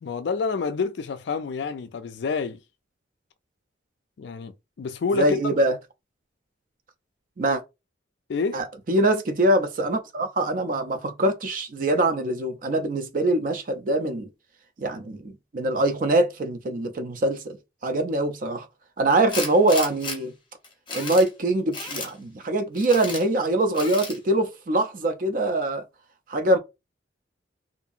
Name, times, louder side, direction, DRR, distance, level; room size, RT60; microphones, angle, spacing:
voice 1, 0.0-2.6 4.2-5.6 8.3-8.6, left 4 dB, 65° left, 0.3 m, -28 dB
voice 2, 5.1-5.7 7.4-7.6 8.5-14.3 14.8-17.6 17.8-18.7 19.0-20.3 20.9-25.8 26.3-26.6, right 1 dB, 45° right, 0.4 m, -23 dB
Tools, 19.3-20.2 20.6-21.3 21.7-22.1 22.8-23.2 23.7-24.2, left 3 dB, 25° left, 0.7 m, -33 dB
2.7 x 2.5 x 2.4 m
head